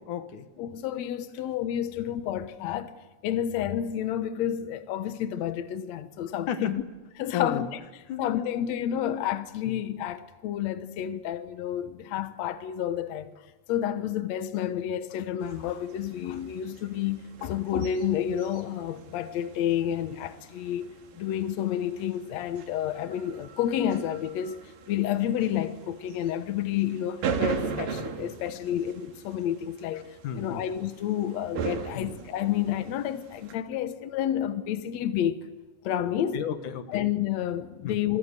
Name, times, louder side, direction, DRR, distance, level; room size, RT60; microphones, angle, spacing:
voice 1, 0.0-0.5 2.0-2.1 6.5-6.8 7.3-7.7 8.1-8.5 9.7-9.8 12.2-12.3 30.2-30.6 31.9-32.1 36.2-37.1 37.8-38.0, left 8 dB, 60° left, 2.4 m, -33 dB
voice 2, 0.6-2.9 3.2-6.8 7.2-7.7 8.2-13.3 13.7-24.6 24.9-30.1 30.4-35.4 35.8-36.4 36.9-38.2, left 10 dB, 90° left, 1.5 m, -30 dB
sound 1, 15.4-33.6, right 6 dB, 60° right, 3.3 m, -39 dB
27.0 x 23.0 x 8.2 m
omnidirectional pair, 4.8 m